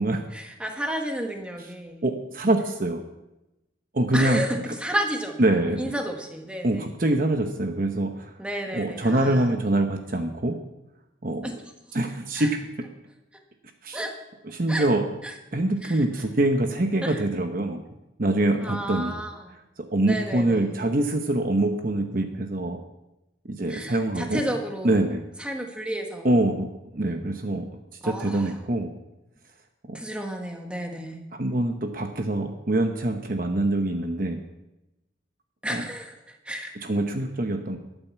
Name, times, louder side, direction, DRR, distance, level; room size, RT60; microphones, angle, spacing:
voice 1, 0.3-2.0 4.1-5.4 5.8-6.9 8.4-9.5 11.4-11.6 12.3-12.5 13.9-14.1 14.7-14.9 15.2-15.3 15.8-16.0 17.0-17.2 18.6-19.6 20.0-20.8 23.7-25.0 25.4-26.3 28.0-28.5 29.9-31.2 35.6-36.1 36.4-36.8, right 1 dB, 5° right, 3 dB, 1.4 m, -31 dB
voice 2, 2.0-3.0 3.9-4.4 5.4-5.8 6.6-8.3 8.7-10.6 11.2-11.5 11.9-12.6 13.8-14.0 14.4-15.0 15.5-17.8 18.2-19.2 19.9-22.8 23.4-24.4 24.8-25.2 26.2-26.7 26.9-27.7 28.0-28.9 29.9-30.0 31.4-34.4 35.7-35.8 36.8-37.8, right 1 dB, 45° right, 5 dB, 0.9 m, -24 dB
12.5 x 9.1 x 7.1 m, 0.95 s
head